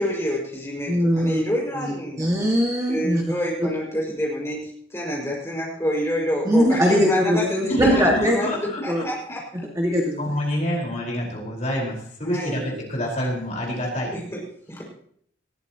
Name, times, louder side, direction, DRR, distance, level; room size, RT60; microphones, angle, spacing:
voice 1, 0.0-2.3 2.9-9.4 12.2-12.6 14.1-14.4 14.7-14.8, equal, 15° left, -2 dB, 5.6 m, -27 dB
voice 2, 0.9-1.4 1.8-3.2 3.6-3.7 6.5-8.4 8.9-9.1 9.8-10.2, equal, 15° right, -1 dB, 1.9 m, -21 dB
voice 3, 7.7-9.0 10.2-14.1, equal, 40° left, -2 dB, 4.6 m, -27 dB
20.0 x 14.0 x 3.0 m, 0.64 s
head